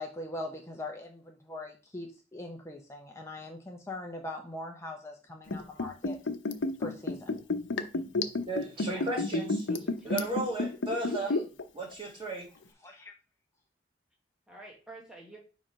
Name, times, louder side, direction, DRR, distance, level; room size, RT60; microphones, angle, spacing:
voice 1, 0.0-6.2 6.8-7.3 12.8-13.1, left 2 dB, 15° left, 1 dB, 0.7 m, -41 dB
Liquid, 5.5-11.6 11.9-12.0, left 2 dB, 85° left, 0.7 m, -30 dB
voice 2, 8.5-9.7 10.0-11.3 11.7-12.5, right 2 dB, 30° right, -1 dB, 2.1 m, -34 dB
voice 3, 9.7-10.3 11.1-11.4 14.5-15.4, right 1 dB, 5° right, -2 dB, 1.1 m, -48 dB
4.8 x 3.8 x 5.4 m, 0.34 s
head